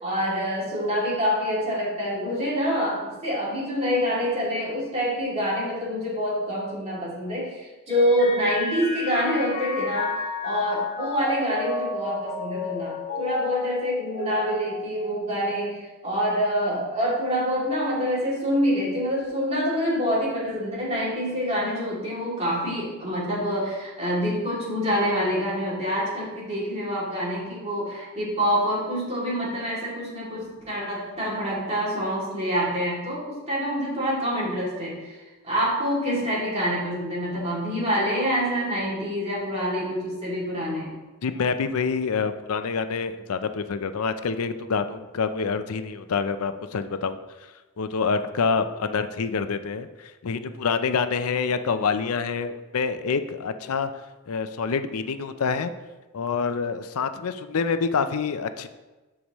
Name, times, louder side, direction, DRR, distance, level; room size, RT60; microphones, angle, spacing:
voice 1, 0.0-40.9, equal, 30° right, -6 dB, 2.6 m, -26 dB
Mallet percussion, 7.9-15.6, left 2 dB, 50° left, 2.3 m, -32 dB
voice 2, 41.2-47.2 47.8-49.9 50.2-53.9 54.3-55.7 56.1-58.7, left 5 dB, 85° left, 10 dB, 0.5 m, -26 dB
12.5 x 4.9 x 3.1 m, 1.2 s
head